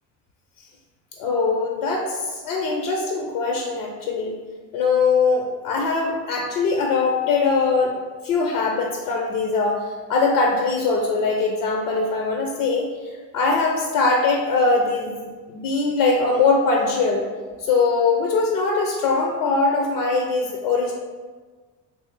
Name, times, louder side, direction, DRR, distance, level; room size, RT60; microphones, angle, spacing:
voice 1, 1.2-4.4 4.7-8.0 8.2-15.2 15.5-17.3 17.6-20.9, left 4 dB, 80° left, 1 dB, 0.6 m, -21 dB
3.3 x 3.1 x 2.9 m, 1.4 s
hypercardioid pair, 60°, 47 cm